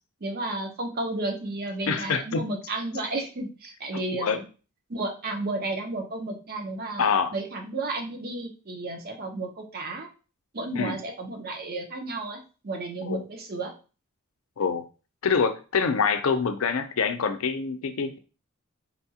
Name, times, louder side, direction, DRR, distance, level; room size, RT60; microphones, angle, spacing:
voice 1, 0.2-4.5 4.9-10.1 10.5-13.7, right 2 dB, 45° right, 2 dB, 0.7 m, -32 dB
voice 2, 1.9-2.4 4.2-4.4 7.0-7.3 10.8-11.0 13.0-13.2 14.6-14.8 15.2-18.2, left 5 dB, 75° left, 8 dB, 0.5 m, -25 dB
4.1 x 2.3 x 2.8 m, 0.34 s
head